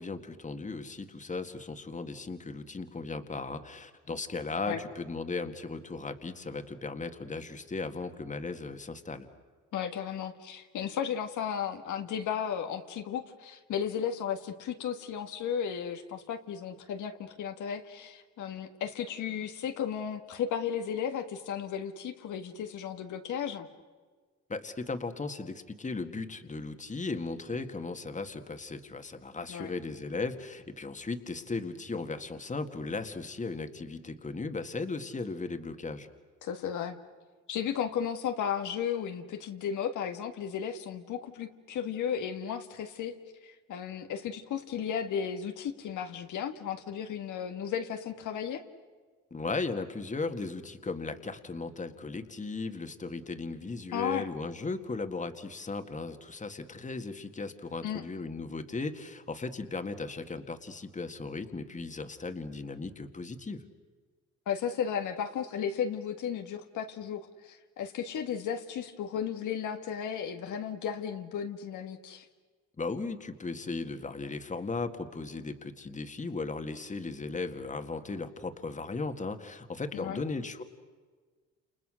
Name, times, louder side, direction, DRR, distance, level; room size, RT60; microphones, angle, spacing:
voice 1, 0.0-9.3 24.5-36.1 49.3-63.6 72.8-80.6, left 3 dB, 25° left, 7 dB, 2.0 m, -37 dB
voice 2, 9.7-23.7 29.5-29.7 36.4-37.0 37.5-43.1 43.4-48.6 53.9-54.3 57.8-58.0 64.5-72.3 79.9-80.2, left 8 dB, 75° left, 5 dB, 1.9 m, -34 dB
29.5 x 29.0 x 6.4 m, 1.4 s
cardioid pair, 90°, 30 cm